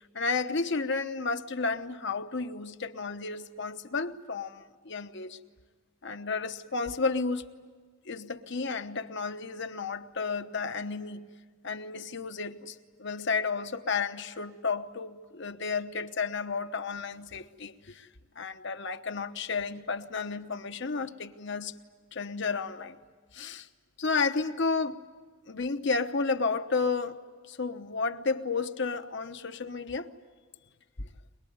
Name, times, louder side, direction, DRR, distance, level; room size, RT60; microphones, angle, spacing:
voice 1, 0.0-5.4 6.0-7.4 8.1-11.3 11.6-18.1 18.4-21.7 22.1-23.0 23.3-23.7 24.0-25.0 25.5-27.2 27.5-30.1 31.0-31.1, left 4 dB, 60° left, 1.0 m, -32 dB
23.0 x 22.0 x 9.4 m
head